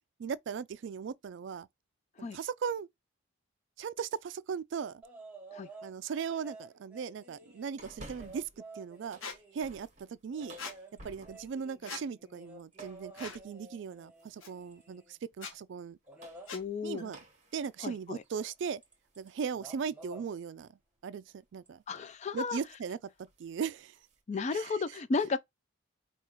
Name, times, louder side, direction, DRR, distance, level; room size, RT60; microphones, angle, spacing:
voice 1, 0.2-1.7 2.2-2.9 3.8-5.0 5.8-8.5 8.8-9.2 9.5-10.6 11.0-16.0 16.8-17.2 17.5-18.8 19.2-20.7 21.0-21.2 21.5-21.8 22.3-23.0 23.4-23.9 24.5-24.8, right 6 dB, 60° right, 0.3 m, -38 dB
sound 1, 5.0-5.9 6.3-9.8 10.3-15.2 16.1-16.6 18.4-18.5 18.8-19.3 19.5-20.3 21.7-21.8, right 2 dB, 5° right, 0.9 m, -52 dB
sound 2, 7.8-8.6 9.0-11.6 12.7-13.1 14.2-14.6 15.9-19.4 19.8-19.9 21.5-21.7 22.0-22.3 22.6-22.8 23.2-24.2, right 1 dB, 35° right, 1.1 m, -54 dB
Squeak, 9.2-9.4 10.6-10.8 11.8-12.0 13.1-13.4 14.4-14.5 15.3-15.5 16.5-16.6, left 5 dB, 80° left, 1.0 m, -41 dB
voice 2, 16.5-17.1 17.8-18.2 21.9-22.6 24.3-25.4, left 4 dB, 35° left, 0.3 m, -33 dB
4.8 x 2.4 x 3.0 m
head